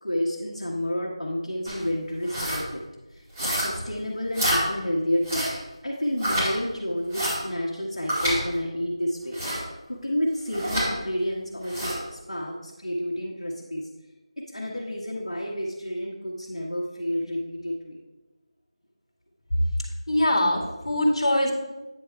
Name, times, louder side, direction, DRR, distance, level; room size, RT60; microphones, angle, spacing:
voice 1, 0.0-2.8 3.1-5.5 5.8-13.9 14.4-18.0, equal, 80° left, -4 dB, 1.4 m, -30 dB
sound 1, 1.6-1.8 2.2-2.6 3.3-3.9 4.3-4.6 5.2-5.6 6.2-6.5 7.1-7.4 8.1-8.4 9.3-9.6 10.5-10.9 11.6-12.0, equal, 20° right, 2.5 m, -27 dB
voice 2, 20.1-21.5, left 1 dB, 65° left, 1 dB, 1.9 m, -22 dB
9.2 x 3.4 x 4.6 m, 1.1 s
figure-of-eight pair, 170°, 3 cm